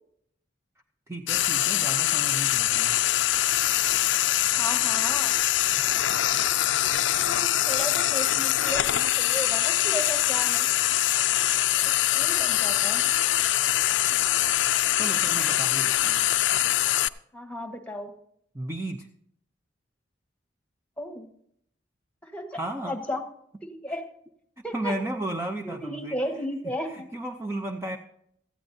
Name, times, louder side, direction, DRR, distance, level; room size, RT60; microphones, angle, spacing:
voice 1, 1.1-3.0 15.0-16.2 18.5-19.1 22.5-23.0 24.7-26.2 26.6-28.0, right 1 dB, 15° right, 4 dB, 0.6 m, -34 dB
Frying (food), 1.3-17.1, left 13 dB, 75° left, 0.4 m, -23 dB
voice 2, 4.6-5.4 7.2-10.7 12.1-13.0 17.3-18.1 21.0-21.3 22.2-22.6 22.9-23.2 23.6-24.1 24.6-24.9 25.6-27.1, equal, 5° left, 4 dB, 1.4 m, -34 dB
17.5 x 14.0 x 2.7 m, 0.69 s
head